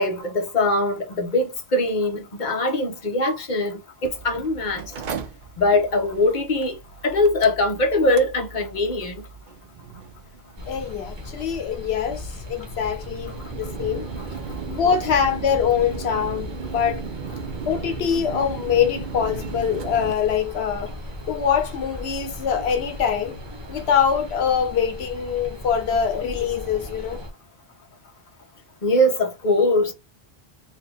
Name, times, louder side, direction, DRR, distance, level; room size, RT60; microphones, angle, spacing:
voice 1, 0.0-4.8 5.6-6.8 7.0-9.2 28.8-29.9, left 1 dB, 45° left, 1.2 m, -22 dB
Mechanical fan, 4.0-20.1, right 6 dB, 55° right, 0.7 m, -36 dB
voice 2, 10.6-14.1 14.7-17.0 17.7-20.9 21.3-23.4 23.7-27.2, left 7 dB, 85° left, 0.9 m, -24 dB
sound 1, 10.6-27.3, left 1 dB, 25° right, 1.1 m, -38 dB
4.1 x 2.4 x 3.5 m
omnidirectional pair, 1.1 m